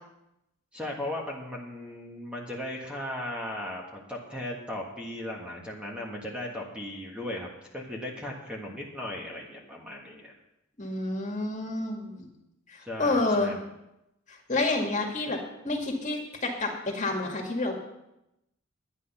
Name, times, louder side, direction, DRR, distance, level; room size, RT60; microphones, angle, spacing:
voice 1, 0.7-10.3 12.8-13.6, left 1 dB, 5° right, -2 dB, 1.6 m, -37 dB
voice 2, 10.8-12.3 12.7-13.5 14.3-15.4 15.6-17.8, left 2 dB, 35° left, 1 dB, 2.1 m, -29 dB
11.5 x 10.0 x 5.7 m, 0.87 s
head